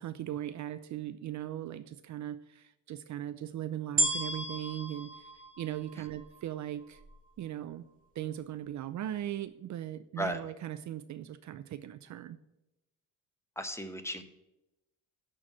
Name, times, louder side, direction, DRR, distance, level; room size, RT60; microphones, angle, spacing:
voice 1, 0.0-5.3 5.6-7.0 7.4-7.8 8.2-12.4, right 12 dB, 50° right, 13 dB, 0.5 m, -39 dB
sound 1, 4.0-6.4 7.0-7.1, right 2 dB, 25° right, 1.7 m, -33 dB
voice 2, 13.6-14.2, equal, 5° left, 8 dB, 1.0 m, -35 dB
11.0 x 4.7 x 5.8 m, 0.92 s
cardioid pair, 115°, 37 cm